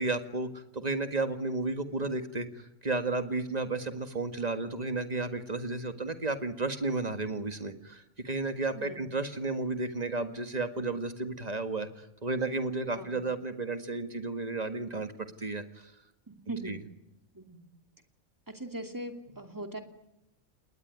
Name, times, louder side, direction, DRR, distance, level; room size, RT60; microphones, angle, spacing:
voice 1, 0.0-15.1 15.4-15.9 16.7-16.8, right 3 dB, 30° right, 8 dB, 1.8 m, -33 dB
voice 2, 8.7-9.0 13.0-13.2 16.3-16.7 17.3-17.6 18.5-19.8, right 2 dB, 15° right, 5 dB, 2.5 m, -40 dB
29.5 x 20.0 x 9.5 m, 0.90 s
omnidirectional pair, 1.4 m